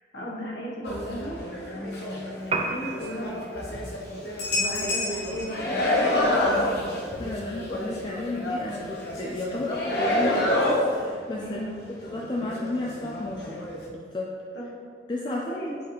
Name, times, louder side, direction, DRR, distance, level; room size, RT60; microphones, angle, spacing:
voice 1, 0.0-1.4 1.7-3.9 4.6-5.9 6.5-6.8 11.3-11.8 14.5-14.8 15.2-15.8, equal, 85° left, -4 dB, 1.5 m, -36 dB
sound 1, 0.8-2.4 2.8-11.4 11.7-11.8 12.0-13.8, left 1 dB, 65° left, 1.0 m, -28 dB
Piano, 2.4-10.5, right 3 dB, 35° right, 0.5 m, -39 dB
voice 2, 7.2-11.6 12.0-13.6 13.9-14.4 15.1-15.4, left 2 dB, 25° left, -2 dB, 0.4 m, -33 dB
7.6 x 4.0 x 3.4 m, 2.1 s
head